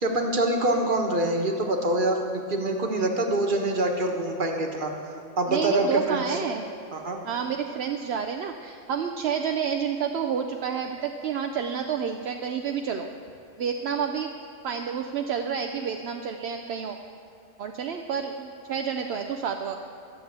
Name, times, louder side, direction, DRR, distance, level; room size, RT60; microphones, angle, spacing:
voice 1, 0.0-2.2 2.5-4.9 5.4-6.4 6.9-7.2, right 1 dB, 40° right, 2 dB, 1.4 m, -25 dB
voice 2, 5.5-6.7 7.2-13.1 13.6-14.3 14.6-17.0 17.6-19.8, right 7 dB, 60° right, 4 dB, 0.7 m, -29 dB
13.0 x 7.2 x 8.7 m, 2.9 s
omnidirectional pair, 1.4 m